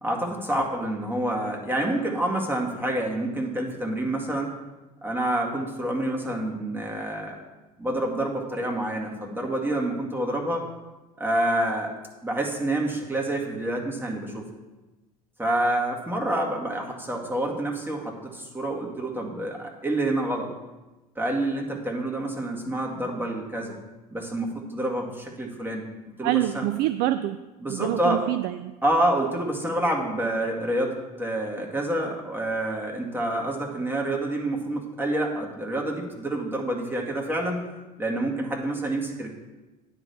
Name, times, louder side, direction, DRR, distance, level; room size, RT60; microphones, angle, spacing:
voice 1, 0.0-4.5 5.0-7.4 7.8-10.7 11.2-11.9 12.2-14.5 15.4-20.5 21.2-23.7 24.1-25.8 26.2-26.7 27.6-28.3 28.8-37.6 38.0-39.3, right 1 dB, 10° right, 0 dB, 2.0 m, -28 dB
voice 2, 26.2-27.4 27.7-28.7, right 14 dB, 55° right, 12 dB, 0.4 m, -26 dB
9.8 x 3.9 x 7.0 m, 1.1 s
hypercardioid pair, 70°, 20 cm